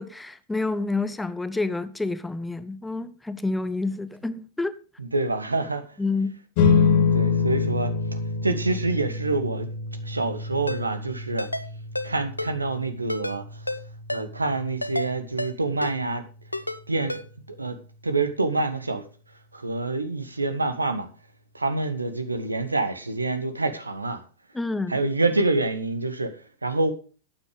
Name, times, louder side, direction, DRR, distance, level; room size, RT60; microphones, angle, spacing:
voice 1, 0.0-4.7 6.0-6.4 24.5-24.9, left 3 dB, 5° left, 0.9 m, -28 dB
voice 2, 5.0-5.8 7.1-9.7 10.0-11.5 12.0-13.6 14.1-16.2 16.9-17.2 17.5-17.8 18.0-19.0 19.5-21.1 21.5-24.2 24.9-26.9, right 3 dB, 80° right, 1.5 m, -27 dB
sound 1, 6.6-17.3, left 5 dB, 50° left, 2.7 m, -27 dB
Ringtone, 10.7-10.8 11.4-11.7 11.9-12.1 12.4-12.5 13.1-13.4 13.7-13.8 14.1-14.2 14.8-15.1 15.4-15.5 15.8-15.9 16.5-16.8 17.1-17.2, left 1 dB, 85° left, 0.8 m, -30 dB
12.5 x 9.3 x 5.1 m
figure-of-eight pair, 90°, 0 cm